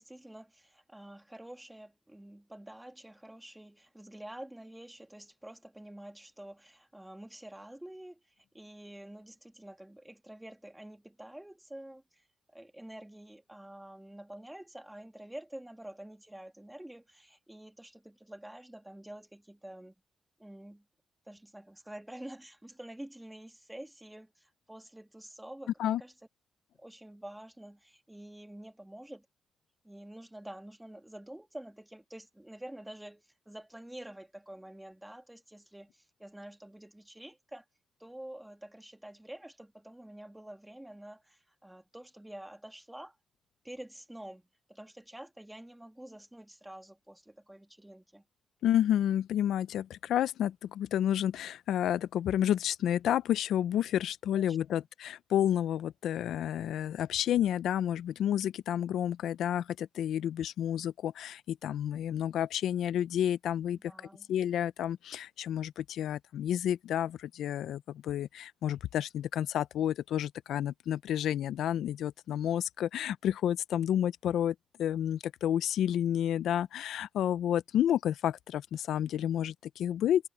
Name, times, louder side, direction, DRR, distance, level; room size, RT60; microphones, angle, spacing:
voice 1, 0.0-19.9 20.4-20.8 21.3-26.1 26.8-29.3 29.8-37.6 38.0-43.2 43.6-48.2 54.3-54.8 63.8-64.3, right 1 dB, 10° right, 2.9 m, -48 dB
voice 2, 48.6-63.8 64.3-80.3, left 10 dB, 80° left, 0.6 m, -30 dB
supercardioid pair, 50°, 0 cm